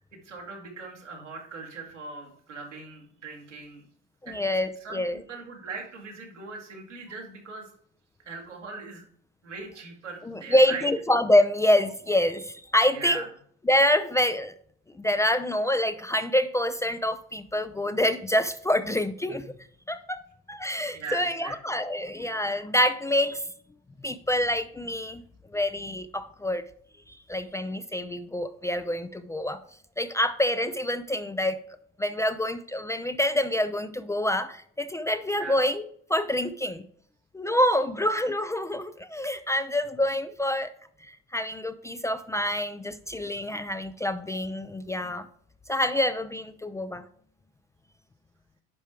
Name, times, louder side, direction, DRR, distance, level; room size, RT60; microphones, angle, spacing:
voice 1, 0.2-3.9 4.3-4.4 4.8-7.7 8.3-9.0 9.4-10.9 12.9-13.3 20.9-21.8 35.4-35.6, right 4 dB, 90° right, -1 dB, 1.9 m, -40 dB
voice 2, 4.2-5.2 10.3-13.2 13.7-14.5 15.0-19.5 19.9-20.2 20.5-23.4 24.0-25.2 25.5-26.6 27.1-29.6 30.0-31.6 32.0-36.8 37.3-40.7 41.0-45.3 45.7-47.0, left 1 dB, 10° left, 11 dB, 0.3 m, -26 dB
9.6 x 5.4 x 3.3 m, 0.62 s
hypercardioid pair, 70°, 35 cm